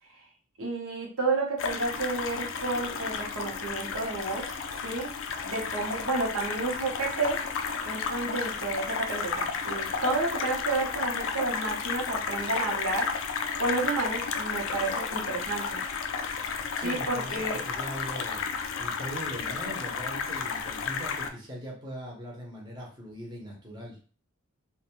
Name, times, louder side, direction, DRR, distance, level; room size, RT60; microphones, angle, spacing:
voice 1, 0.6-4.5 4.8-5.1 5.4-7.4 7.8-13.1 13.6-15.9 16.3-17.6, right 3 dB, 80° right, -1 dB, 0.8 m, -31 dB
sound 1, 1.6-21.3, left 6 dB, 70° left, 0.3 m, -32 dB
voice 2, 16.6-18.5 18.8-24.0, equal, 20° right, -2 dB, 0.7 m, -40 dB
2.5 x 2.2 x 2.9 m, 0.38 s
head